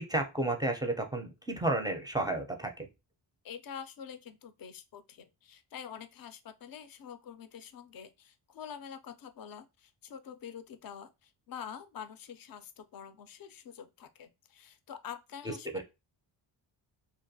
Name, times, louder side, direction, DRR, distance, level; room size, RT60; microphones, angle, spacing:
voice 1, 0.0-2.9 15.7-15.8, right 2 dB, 10° right, 0.4 m, -32 dB
voice 2, 3.4-15.8, left 8 dB, 45° left, 0.5 m, -46 dB
2.5 x 2.2 x 2.6 m
cardioid pair, 60°, 50 cm